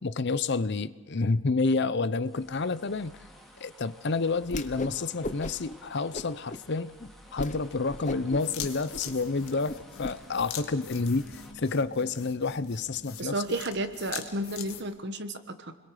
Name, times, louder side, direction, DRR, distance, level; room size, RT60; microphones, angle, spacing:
voice 1, 0.0-3.1 3.6-6.9 7.3-11.3 11.5-13.3, left 3 dB, 50° left, 15 dB, 0.6 m, -29 dB
sound 1, 2.2-11.5, equal, ahead, 2.5 m, -54 dB
Whoosh swoosh swish, 4.4-5.0 5.2-5.7 6.1-6.6 7.0-7.1 7.4-7.6 7.9-10.1, left 2 dB, 35° left, 1.0 m, -36 dB
sound 2, 8.4-14.8, left 8 dB, 70° left, 1.9 m, -43 dB
voice 2, 13.2-15.7, right 1 dB, 50° right, 9 dB, 1.4 m, -32 dB
29.0 x 22.0 x 5.0 m, 1.2 s
head